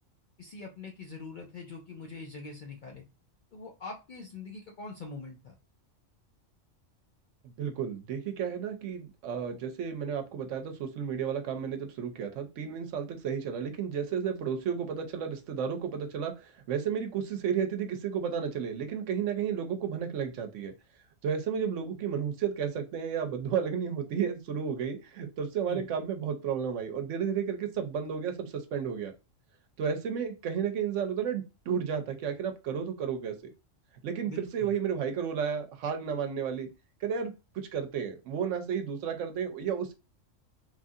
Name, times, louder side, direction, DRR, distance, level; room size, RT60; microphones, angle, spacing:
voice 1, 0.4-3.0 3.5-5.5 25.7-25.9 34.3-34.7, left 4 dB, 60° left, 1 dB, 0.5 m, -43 dB
voice 2, 7.4-20.7 21.2-29.1 29.8-33.3 34.0-36.7 37.0-39.9, right 7 dB, 75° right, 6 dB, 0.9 m, -32 dB
3.0 x 2.4 x 2.6 m, 0.28 s
omnidirectional pair, 1.3 m